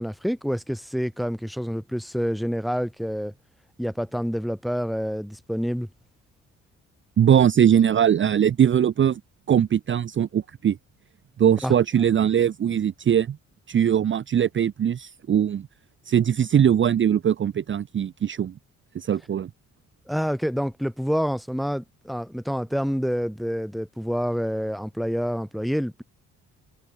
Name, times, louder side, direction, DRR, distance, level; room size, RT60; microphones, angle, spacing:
voice 1, 0.0-3.3 3.8-5.9 11.6-11.7 20.1-26.0, equal, ahead, 2.8 m, -27 dB
voice 2, 7.2-9.2 9.5-10.8 11.4-13.4 13.7-15.7 16.1-18.5 18.9-19.5, right 9 dB, 40° right, 0.7 m, -21 dB
cardioid pair, 90°, 30 cm